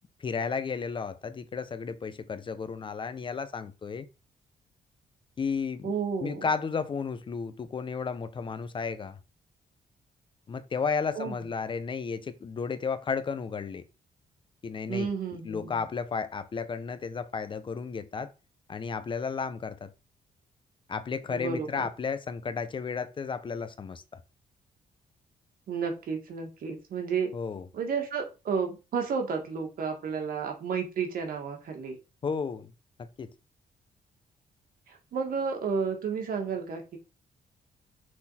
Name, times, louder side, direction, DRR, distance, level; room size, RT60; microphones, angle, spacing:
voice 1, 0.2-4.1 5.4-5.9 6.2-9.2 10.5-13.8 14.6-15.1 15.4-18.3 18.7-19.9 20.9-24.0 27.3-27.6 32.2-32.7 33.2-33.3, left 5 dB, 30° left, 0.5 m, -33 dB
voice 2, 5.8-6.5 11.2-11.3 14.9-15.8 21.3-21.9 25.7-27.3 27.7-32.0 34.9-37.0, right 6 dB, 70° right, 1.8 m, -32 dB
6.3 x 4.0 x 4.2 m
wide cardioid pair, 155°, 16 cm